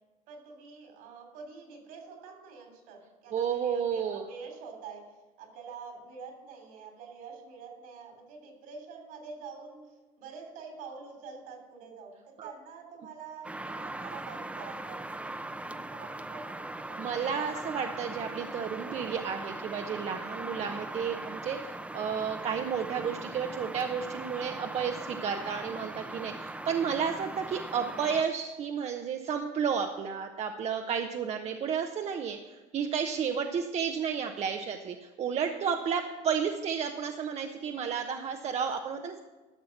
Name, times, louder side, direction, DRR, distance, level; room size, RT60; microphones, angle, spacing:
voice 1, 0.3-5.1 5.4-17.4, right 5 dB, 75° right, 3 dB, 3.1 m, -46 dB
voice 2, 3.3-4.2 12.4-12.5 17.0-39.2, right 7 dB, 45° right, 4 dB, 0.8 m, -32 dB
sound 1, 13.4-28.2, right 2 dB, 10° right, 0.7 m, -40 dB
12.5 x 6.4 x 5.9 m, 1.2 s
supercardioid pair, 90°, 15 cm